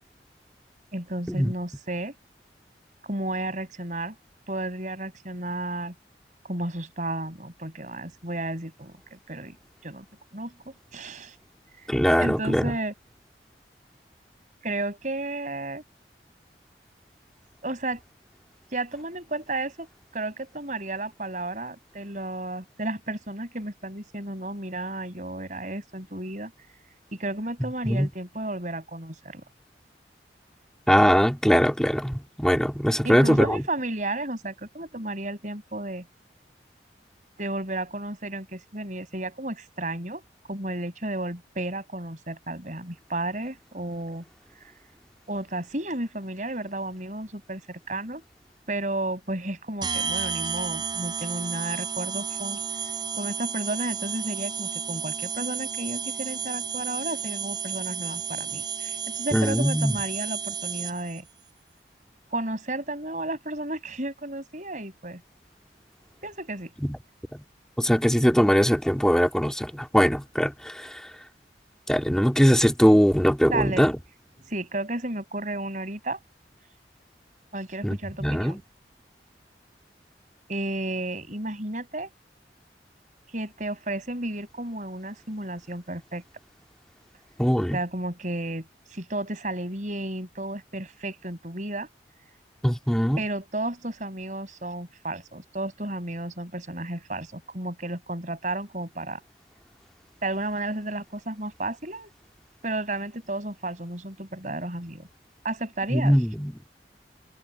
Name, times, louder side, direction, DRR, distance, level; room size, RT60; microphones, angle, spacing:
voice 1, 0.9-2.1 3.0-4.1 4.5-5.9 6.4-9.6 9.8-10.0 10.3-11.4 11.8-12.9 14.6-15.8 17.6-18.0 18.7-19.9 20.1-26.5 27.1-29.4 33.0-36.1 37.4-40.2 40.5-44.2 45.3-48.2 48.7-52.6 53.2-61.3 62.3-65.2 66.2-66.7 73.5-73.9 74.5-76.2 77.5-78.6 80.5-82.1 83.3-86.2 87.7-91.9 93.2-99.2 100.2-102.1 102.6-105.1 105.4-106.2, right 2 dB, 45° right, 5.7 m, -32 dB
voice 2, 11.9-12.7 27.8-28.1 30.9-33.6 59.3-60.0 66.8-67.0 67.8-70.9 71.9-73.9 77.8-78.6 87.4-87.8 92.6-93.2 105.9-106.5, equal, 5° left, 2.6 m, -21 dB
sound 1, 49.8-61.2, right 7 dB, 25° right, 4.3 m, -32 dB
head